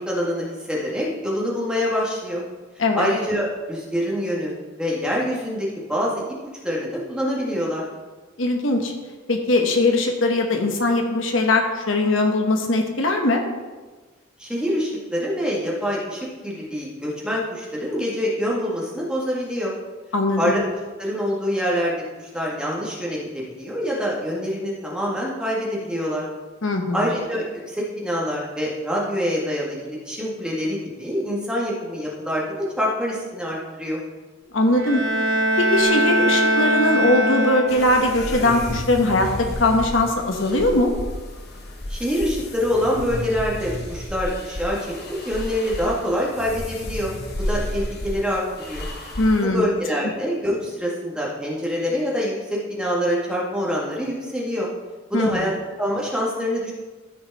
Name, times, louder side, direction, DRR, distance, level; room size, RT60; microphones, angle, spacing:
voice 1, 0.0-2.4 2.9-4.5 4.8-6.2 6.6-7.8 14.4-19.7 20.4-20.6 21.0-26.2 26.9-34.0 41.9-44.9 45.3-47.1 47.5-48.9 49.4-54.7 55.1-55.5 55.8-56.7, equal, 5° right, -4 dB, 1.8 m, -25 dB
voice 2, 8.4-8.9 9.3-13.4 20.1-20.5 26.6-27.1 34.5-35.0 35.6-40.9 49.2-49.7 55.1-55.4, left 2 dB, 75° left, 4 dB, 1.1 m, -20 dB
Bowed string instrument, 34.7-38.1, right 1 dB, 70° right, 3.4 m, -21 dB
sound 1, 37.7-49.5, left 1 dB, 55° left, 1.3 m, -32 dB
14.0 x 5.2 x 4.1 m, 1.3 s
head